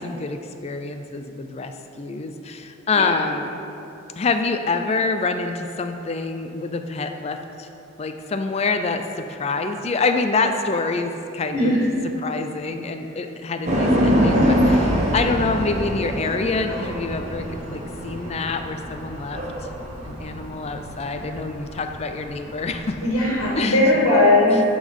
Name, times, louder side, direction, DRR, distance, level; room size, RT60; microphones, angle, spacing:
voice 1, 0.0-3.5 4.2-7.7 8.0-11.8 12.2-19.4 20.0-23.0 23.6-23.8 24.5-24.6, left 3 dB, 30° left, 7 dB, 0.3 m, -26 dB
sound 1, 13.6-23.5, equal, 30° right, 1.0 m, -24 dB
voice 2, 23.0-24.6, left 2 dB, 80° left, -6 dB, 1.6 m, -18 dB
9.0 x 3.9 x 5.3 m, 2.9 s
head